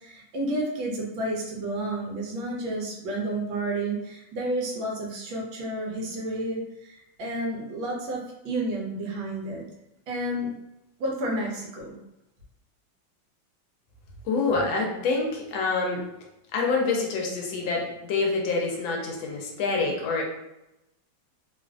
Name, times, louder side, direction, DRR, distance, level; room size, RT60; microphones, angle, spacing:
voice 1, 0.0-9.6 10.1-10.5 11.0-12.0, right 1 dB, 80° right, -2 dB, 1.5 m, -31 dB
voice 2, 14.2-16.0 16.5-20.2, left 3 dB, 85° left, -1 dB, 1.5 m, -26 dB
3.6 x 2.5 x 2.3 m, 0.90 s
omnidirectional pair, 2.1 m